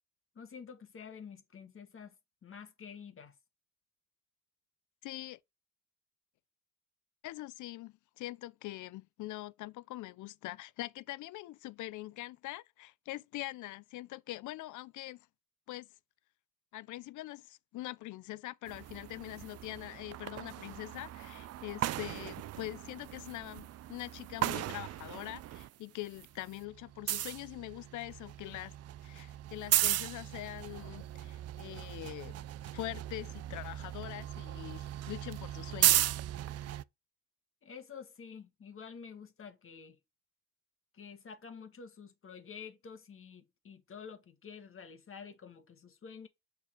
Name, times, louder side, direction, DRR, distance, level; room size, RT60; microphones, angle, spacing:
voice 1, 0.4-2.1 2.4-3.3 37.6-40.0 40.9-46.3, left 6 dB, 45° left, 1.7 m, -49 dB
voice 2, 5.0-5.4 7.2-15.2 15.7-15.9 16.7-28.8 29.0-32.4 32.7-36.0, left 17 dB, 80° left, 0.5 m, -43 dB
sound 1, 18.7-25.7 26.0-36.8, right 13 dB, 55° right, 0.4 m, -36 dB
6.7 x 4.2 x 4.4 m
cardioid pair, 90°, 30 cm